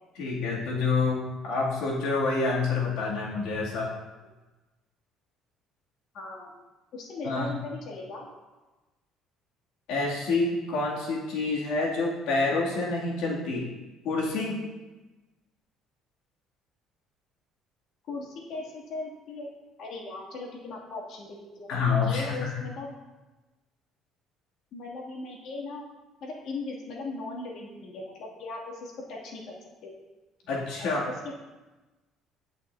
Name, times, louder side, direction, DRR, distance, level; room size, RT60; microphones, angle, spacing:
voice 1, 0.2-3.9 7.2-7.6 9.9-13.7 14.0-14.6 21.7-22.6 30.5-31.1, left 3 dB, 80° left, -4 dB, 2.7 m, -27 dB
voice 2, 6.1-6.5 6.9-8.3 18.1-19.5 19.8-21.7 22.0-22.9 24.7-25.9 26.2-29.5 29.8-30.0 30.8-30.9 31.2-31.4, left 3 dB, 60° left, -3 dB, 2.6 m, -38 dB
17.5 x 6.3 x 2.8 m, 1.1 s
cardioid pair, 155°, 0 cm